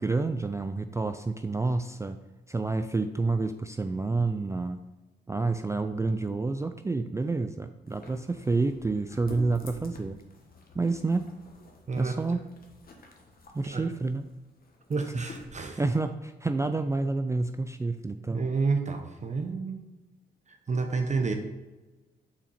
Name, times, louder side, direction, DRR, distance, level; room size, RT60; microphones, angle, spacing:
voice 1, 0.0-2.2 2.5-4.8 5.3-10.2 10.7-11.3 12.0-12.4 13.5-14.3 15.1-15.3 15.8-18.5, right 3 dB, 15° right, 8 dB, 0.3 m, -29 dB
sound 1, 7.9-15.7, left 2 dB, 50° left, 1.2 m, -49 dB
voice 2, 14.9-15.8 18.3-19.8 20.5-21.3, right 4 dB, 40° right, 5 dB, 0.8 m, -29 dB
5.8 x 4.2 x 4.2 m, 1.1 s
supercardioid pair, 60°, 19 cm